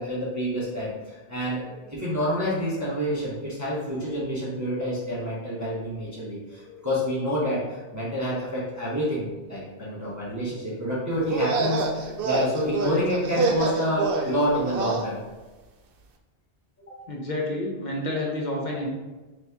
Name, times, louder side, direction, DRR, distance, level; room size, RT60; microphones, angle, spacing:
voice 1, 0.0-1.6 1.9-15.2 16.8-16.9, equal, 20° right, -8 dB, 0.9 m, -28 dB
voice 2, 1.5-1.9 6.5-6.8 17.1-18.9, left 1 dB, 50° left, -1 dB, 0.7 m, -30 dB
sound 1, 11.2-15.1, right 3 dB, 65° right, 0.7 m, -27 dB
4.1 x 3.0 x 3.5 m, 1.2 s
omnidirectional pair, 1.1 m